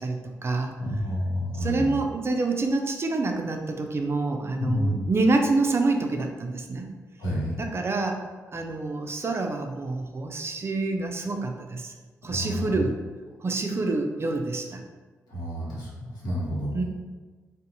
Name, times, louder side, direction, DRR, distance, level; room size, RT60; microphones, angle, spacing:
voice 1, 0.0-0.7 1.6-6.9 7.6-8.2 8.5-11.9 12.2-13.0 13.4-14.8 16.7-16.8, right 3 dB, 40° right, 4 dB, 0.3 m, -27 dB
voice 2, 0.8-2.0 4.6-5.0 7.2-7.6 12.2-12.8 15.3-16.8, equal, 80° left, -6 dB, 0.8 m, -29 dB
2.5 x 2.0 x 2.8 m, 1.4 s
supercardioid pair, 45°, 7 cm